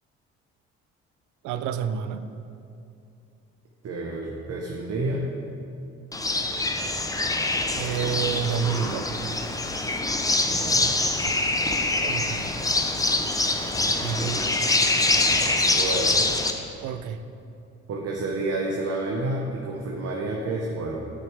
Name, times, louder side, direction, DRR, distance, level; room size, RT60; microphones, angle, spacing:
voice 1, 1.4-2.3 7.7-9.1 12.0-12.5 14.0-14.5 16.8-17.3, right 8 dB, 70° right, 11 dB, 0.5 m, -29 dB
voice 2, 3.8-5.3 10.4-11.0 15.6-16.4 17.9-21.0, right 2 dB, 50° right, -1 dB, 1.0 m, -30 dB
sound 1, 6.1-16.5, left 2 dB, 10° left, 0.6 m, -24 dB
9.0 x 6.4 x 3.3 m, 2.6 s
supercardioid pair, 65°, 31 cm